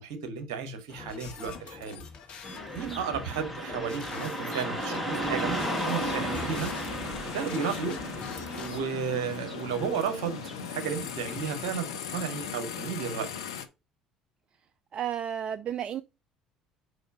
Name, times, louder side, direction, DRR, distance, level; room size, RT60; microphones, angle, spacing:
voice 1, 0.0-2.0 2.7-6.7 7.2-8.0 8.5-10.4 10.6-11.9 12.1-13.3, right 6 dB, 65° right, 1.6 m, -33 dB
sound 1, 0.9-8.8, left 5 dB, 45° left, 1.5 m, -43 dB
Car passing by / Traffic noise roadway noise, 2.4-11.5, right 1 dB, ahead, 4.2 m, -35 dB
sound 2, 5.6-13.7, left 8 dB, 75° left, 0.7 m, -39 dB
voice 2, 14.9-16.0, right 9 dB, 40° right, 0.4 m, -33 dB
5.1 x 4.9 x 5.0 m
figure-of-eight pair, 60°, 2 cm